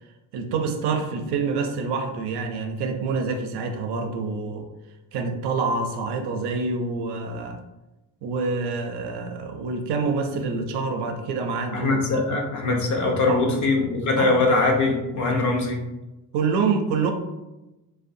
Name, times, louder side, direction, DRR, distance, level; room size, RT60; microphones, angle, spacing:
voice 1, 0.3-4.7 5.1-7.6 8.2-12.2 13.3-13.4 14.2-14.4 16.3-17.1, right 4 dB, 80° right, 5 dB, 0.5 m, -27 dB
voice 2, 11.7-15.8, left 3 dB, 50° left, 1 dB, 0.6 m, -22 dB
2.6 x 2.2 x 2.5 m, 1.0 s
cardioid pair, 105°, 39 cm